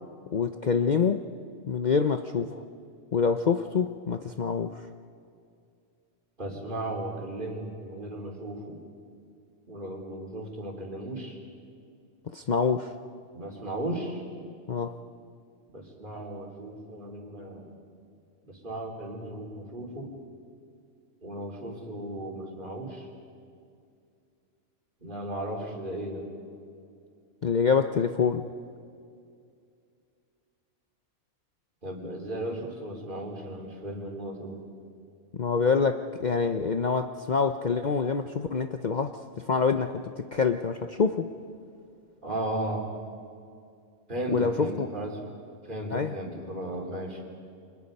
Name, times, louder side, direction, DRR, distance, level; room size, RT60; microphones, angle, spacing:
voice 1, 0.3-1.2 1.7-2.6 3.1-4.8 12.3-12.9 14.7-14.9 27.4-28.5 35.3-41.3 44.3-44.9 45.9-46.2, left 5 dB, 45° left, 7 dB, 0.7 m, -26 dB
voice 2, 6.4-8.8 9.7-11.4 13.3-14.2 15.7-17.7 18.4-20.1 21.2-23.1 25.0-26.3 31.8-34.6 42.2-42.9 44.1-45.3 45.6-47.2, right 1 dB, 40° right, 0 dB, 3.8 m, -35 dB
29.5 x 25.5 x 5.4 m, 2.4 s
omnidirectional pair, 1.3 m